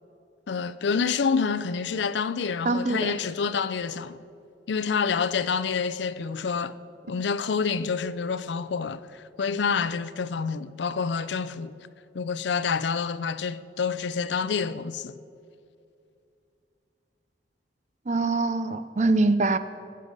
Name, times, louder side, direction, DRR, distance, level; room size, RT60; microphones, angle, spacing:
voice 1, 0.5-4.2 4.7-6.7 7.1-11.7 12.1-15.1, left 5 dB, 70° left, 0.5 m, -28 dB
voice 2, 2.6-3.1 18.1-19.6, right 3 dB, 40° right, 0.5 m, -23 dB
20.5 x 7.7 x 5.1 m
head